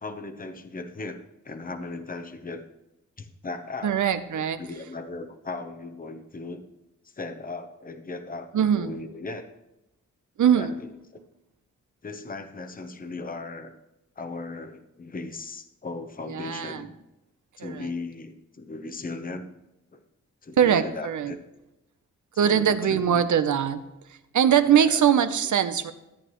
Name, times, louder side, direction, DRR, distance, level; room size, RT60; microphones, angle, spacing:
voice 1, 0.0-2.6 3.2-4.0 4.3-6.7 7.2-9.5 10.5-10.7 11.1-11.2 12.0-13.7 14.2-17.0 17.6-19.5 19.9-20.0 20.4-21.4 22.4-23.2 24.7-25.0, left 3 dB, 30° left, 8 dB, 0.9 m, -37 dB
voice 2, 3.8-4.6 8.5-9.0 10.4-10.8 16.3-16.9 17.6-17.9 20.6-21.4 22.4-23.8 24.1-25.9, right 8 dB, 75° right, 11 dB, 0.8 m, -22 dB
13.5 x 9.0 x 3.1 m, 0.94 s
wide cardioid pair, 105°, 30 cm